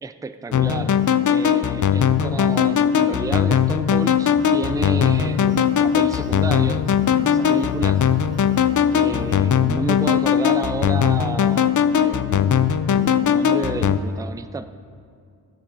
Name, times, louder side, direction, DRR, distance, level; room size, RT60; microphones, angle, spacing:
voice 1, 0.0-6.9 7.2-8.0 8.9-14.7, right 3 dB, 10° right, 11 dB, 0.3 m, -31 dB
sound 1, 0.5-14.0, left 8 dB, 50° left, 0.5 m, -19 dB
sound 2, 4.3-9.4, right 1 dB, 30° right, 0.7 m, -37 dB
14.0 x 8.5 x 4.8 m, 2.3 s
wide cardioid pair, 120°, 40 cm